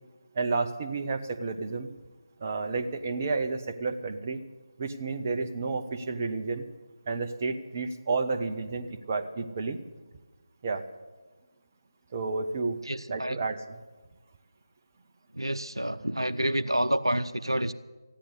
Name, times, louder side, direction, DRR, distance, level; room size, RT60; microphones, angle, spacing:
voice 1, 0.3-1.9 2.4-4.4 4.8-6.7 7.1-9.8 10.6-10.9 12.1-12.8 13.1-13.8, right 3 dB, 25° right, 5 dB, 0.9 m, -31 dB
voice 2, 12.9-13.4 15.3-17.7, right 1 dB, 85° right, 11 dB, 0.7 m, -28 dB
14.5 x 10.0 x 9.8 m, 1.3 s
figure-of-eight pair, 160°, 2 cm